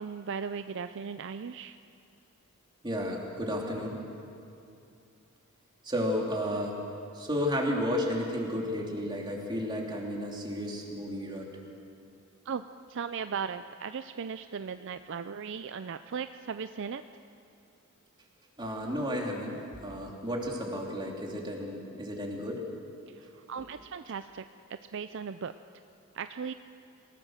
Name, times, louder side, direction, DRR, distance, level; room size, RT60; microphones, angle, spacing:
voice 1, 0.0-1.8 12.4-17.0 23.1-24.4 24.7-25.5 26.1-26.5, right 6 dB, 55° right, 10 dB, 0.5 m, -37 dB
voice 2, 2.8-4.0 5.8-6.8 7.1-11.5 18.6-22.6, equal, 20° right, -1 dB, 3.1 m, -32 dB
27.0 x 18.0 x 6.5 m, 2.6 s
head